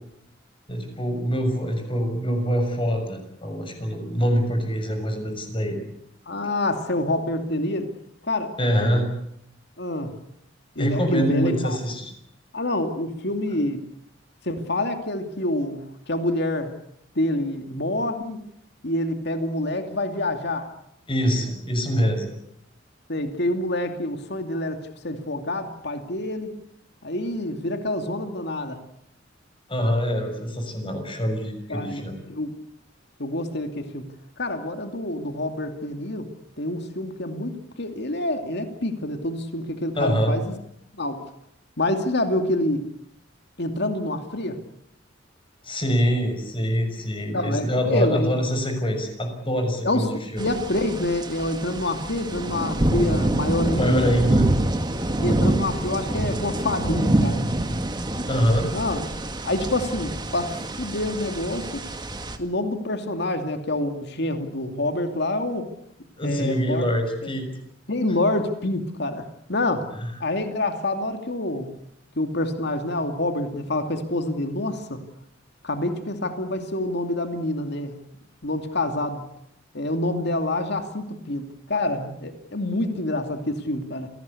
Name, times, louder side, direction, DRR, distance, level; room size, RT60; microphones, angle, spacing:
voice 1, 0.7-5.8 8.6-9.0 10.8-12.1 21.1-22.3 29.7-32.2 39.9-40.3 45.6-50.5 53.7-54.5 58.3-58.7 66.2-67.5 70.0-70.1, equal, 30° left, 6 dB, 6.5 m, -24 dB
voice 2, 6.3-7.9 8.3-8.5 9.8-10.2 10.8-11.8 12.5-13.8 14.4-16.7 17.2-18.4 18.8-20.7 23.1-26.5 27.0-28.8 31.7-32.5 33.2-34.1 34.4-36.3 36.6-40.4 41.0-41.2 41.8-42.8 43.6-44.6 47.3-48.4 49.8-54.2 55.2-57.4 58.7-59.0 59.4-61.8 62.4-65.7 66.2-66.9 67.9-69.9 70.2-71.7 72.2-75.0 75.6-78.0 78.4-79.2 79.7-84.1, left 1 dB, 60° left, 6 dB, 2.5 m, -27 dB
sound 1, 50.4-62.4, right 1 dB, 25° right, 2.1 m, -26 dB
27.5 x 18.5 x 8.4 m, 0.75 s
head